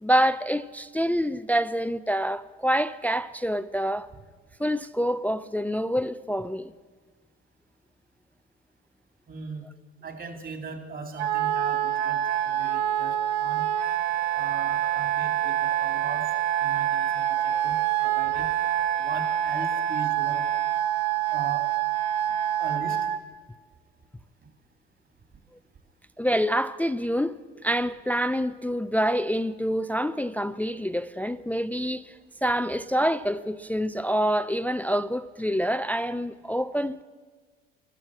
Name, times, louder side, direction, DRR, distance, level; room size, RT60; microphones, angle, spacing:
voice 1, 0.0-4.1 4.6-6.7 26.2-27.4 27.6-32.1 32.4-37.0, equal, 5° left, 0.4 m, -26 dB
voice 2, 9.3-9.6 10.0-13.6 14.3-16.3 16.6-17.8 18.0-18.5 19.0-20.4 21.3-21.7 22.6-23.0, right 4 dB, 35° right, 2.7 m, -38 dB
Wind instrument woodwind instrument, 11.2-23.2, right 12 dB, 80° right, 0.9 m, -26 dB
14.0 x 12.0 x 7.4 m
supercardioid pair, 75°, 32 cm